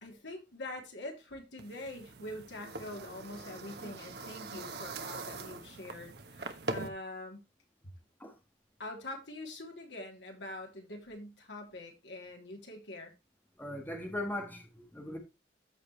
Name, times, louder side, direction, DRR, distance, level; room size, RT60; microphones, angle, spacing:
voice 1, 0.0-7.4 8.8-13.1, left 1 dB, 85° left, 3.1 m, -44 dB
sound 1, 1.6-6.9, right 3 dB, 65° right, 1.2 m, -42 dB
voice 2, 13.6-15.2, left 1 dB, 10° left, 1.7 m, -39 dB
14.0 x 5.0 x 3.2 m
head